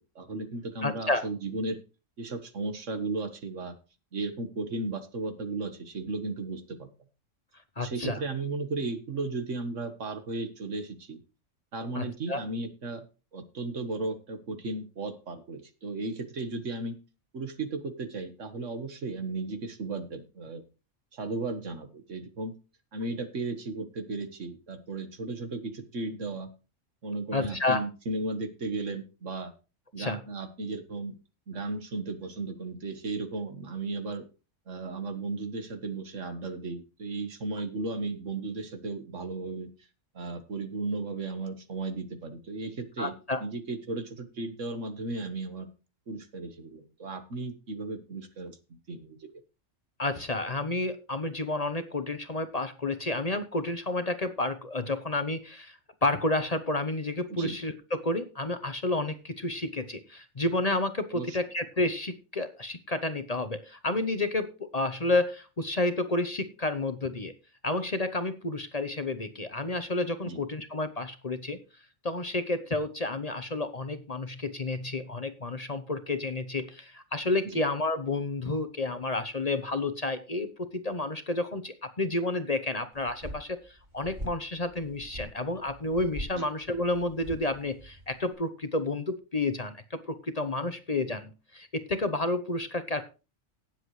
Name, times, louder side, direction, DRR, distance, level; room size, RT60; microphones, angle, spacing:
voice 1, 0.2-1.8 2.2-3.7 4.1-6.9 7.8-11.2 11.7-13.0 13.3-17.0 17.3-20.6 21.1-22.5 22.9-26.5 27.0-29.5 29.9-31.1 31.5-34.2 34.7-39.7 40.1-43.1 43.4-45.7 46.1-48.6 48.9-49.3 57.3-57.5 61.1-61.4 70.2-70.4 77.5-77.6 86.3-86.5, right 3 dB, 75° right, 9 dB, 1.9 m, -35 dB
voice 2, 0.8-1.3 7.8-8.2 11.9-12.4 27.3-27.8 30.0-30.2 43.0-43.4 50.0-67.3 67.6-71.6 72.0-93.0, left 2 dB, 35° left, 10 dB, 1.0 m, -30 dB
sound 1, 82.9-88.3, equal, 35° right, 4.1 m, -43 dB
17.5 x 7.6 x 3.2 m, 0.32 s
omnidirectional pair, 1.3 m